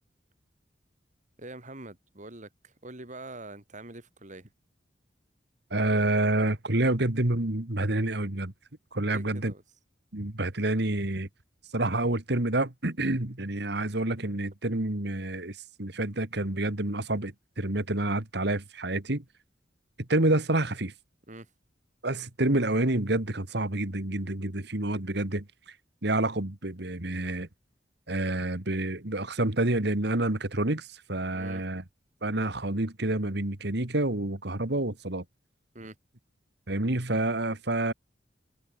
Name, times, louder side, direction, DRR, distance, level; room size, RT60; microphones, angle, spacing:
voice 1, 1.4-4.5 9.0-9.6 21.3-21.5 31.3-31.6 35.7-36.0, right 2 dB, 45° right, 3.7 m, -44 dB
voice 2, 5.7-8.5 8.9-9.5 10.1-11.3 11.7-19.2 20.1-20.9 22.0-25.5 26.0-27.5 28.1-31.8 32.2-35.2 36.7-37.9, right 2 dB, 65° right, 2.4 m, -28 dB
head